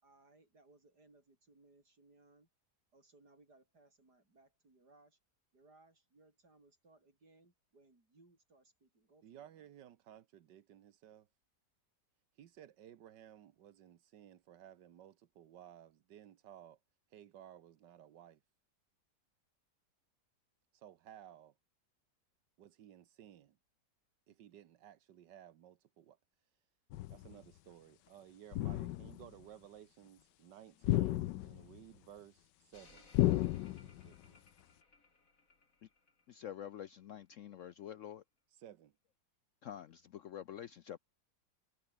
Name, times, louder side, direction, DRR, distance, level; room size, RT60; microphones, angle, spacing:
voice 1, 0.0-2.5 2.9-5.2 5.5-9.7, right 2 dB, 70° right, 6.5 m, -66 dB
voice 2, 9.2-11.3 12.4-16.8 17.1-18.4 20.7-21.5 22.6-23.6 24.3-26.2 27.1-33.1 33.7-34.4 38.5-38.9, right 10 dB, 85° right, 1.7 m, -57 dB
sound 1, 26.9-27.3 28.5-29.3 30.8-31.8 33.1-34.1, left 15 dB, 85° left, 1.3 m, -33 dB
sound 2, 32.7-36.9 37.2-37.3, left 3 dB, 50° left, 3.7 m, -65 dB
voice 3, 36.3-38.2 39.6-41.0, left 10 dB, 65° left, 0.8 m, -47 dB
omnidirectional pair, 1.8 m